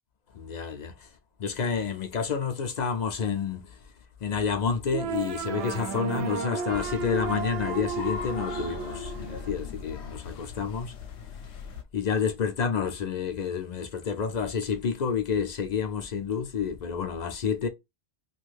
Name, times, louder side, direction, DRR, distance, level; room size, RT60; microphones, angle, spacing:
voice 1, 0.3-1.1 1.4-3.9 4.2-10.9 11.9-17.7, left 6 dB, 50° left, 0.5 m, -29 dB
sound 1, 4.9-9.9, right 6 dB, 65° right, 0.7 m, -33 dB
sound 2, 6.7-11.8, left 6 dB, 75° left, 0.9 m, -39 dB
2.6 x 2.4 x 3.2 m
omnidirectional pair, 1.2 m